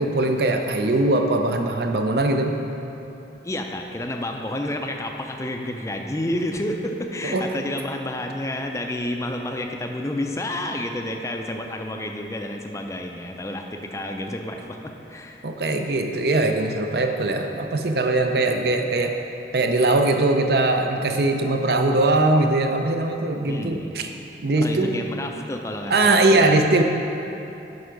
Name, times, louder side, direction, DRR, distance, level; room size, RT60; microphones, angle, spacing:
voice 1, 0.0-2.6 7.3-7.6 15.4-19.1 19.5-24.1 24.4-25.0 25.9-26.8, right 2 dB, 65° right, 4 dB, 0.6 m, -21 dB
voice 2, 3.4-15.4 18.3-18.4 23.4-24.0 24.6-26.5, left 1 dB, 15° left, 3 dB, 0.4 m, -30 dB
7.9 x 5.7 x 5.2 m, 2.9 s
head